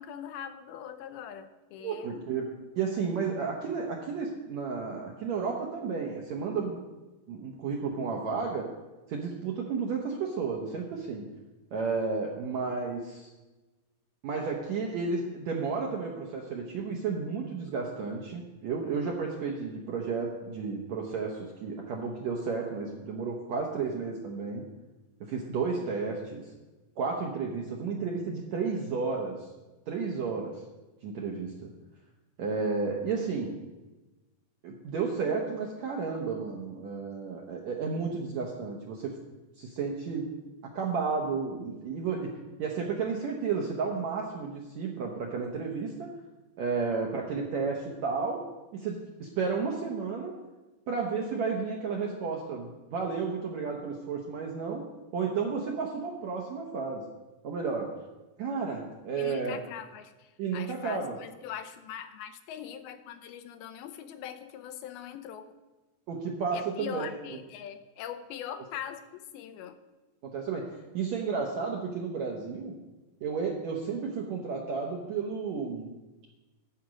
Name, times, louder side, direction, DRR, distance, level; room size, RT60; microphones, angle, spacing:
voice 1, 0.0-2.3 59.2-65.5 66.5-69.8, left 9 dB, 90° left, 9 dB, 2.5 m, -42 dB
voice 2, 1.8-2.5 2.8-6.9 7.3-8.7 9.1-11.2 11.7-13.3 14.2-24.6 25.2-26.4 27.0-29.5 29.9-30.6 31.0-31.7 32.4-33.6 34.6-39.1 39.6-40.3 40.6-42.3 42.6-46.1 46.6-48.4 48.7-50.3 50.9-54.8 55.1-57.0 57.4-57.9 58.4-59.6 60.4-61.2 66.1-67.2 70.2-72.7 73.2-75.9, right 5 dB, 75° right, 0 dB, 1.7 m, -32 dB
11.5 x 5.1 x 7.5 m, 1.1 s
omnidirectional pair, 4.4 m